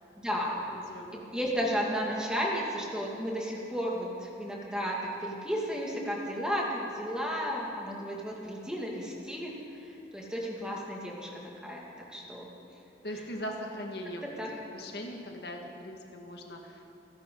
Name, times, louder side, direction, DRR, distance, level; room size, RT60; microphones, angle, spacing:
voice 1, 0.2-0.6 1.1-9.6 10.1-12.5 14.2-14.5, equal, 5° right, -3 dB, 2.0 m, -33 dB
voice 2, 0.9-1.4 12.2-12.3 13.0-14.3 14.7-16.8, equal, 65° left, 2 dB, 1.6 m, -40 dB
29.0 x 11.0 x 3.8 m, 2.9 s
head